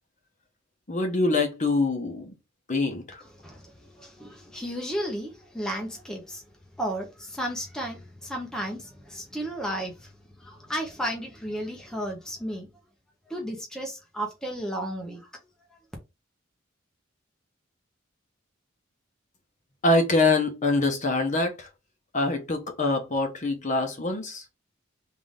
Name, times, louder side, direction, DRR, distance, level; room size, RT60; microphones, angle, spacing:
voice 1, 0.9-2.3 2.7-3.2 19.8-21.7 22.1-24.5, left 2 dB, 40° left, 0.9 m, -24 dB
voice 2, 3.2-6.4 6.8-12.7 13.3-15.3 15.7-15.8, equal, 5° left, 0.7 m, -34 dB
3.7 x 2.5 x 3.5 m
head